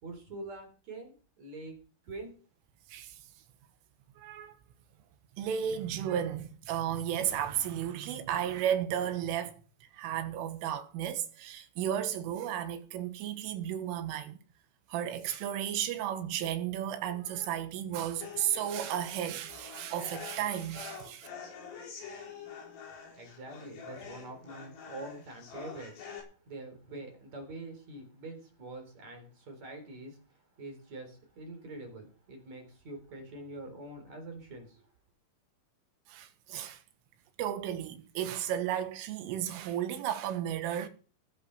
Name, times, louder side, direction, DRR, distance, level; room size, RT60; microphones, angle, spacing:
voice 1, 0.0-1.8 2.1-2.3 23.2-30.2 30.6-34.9, right 2 dB, 35° right, 4.7 m, -45 dB
voice 2, 4.2-4.6 5.4-9.5 9.9-14.4 14.9-21.3 36.1-36.8 37.4-40.9, right 10 dB, 85° right, 3.9 m, -33 dB
sound 1, 18.2-26.2, left 6 dB, 85° left, 7.0 m, -46 dB
19.0 x 8.1 x 5.7 m
omnidirectional pair, 5.7 m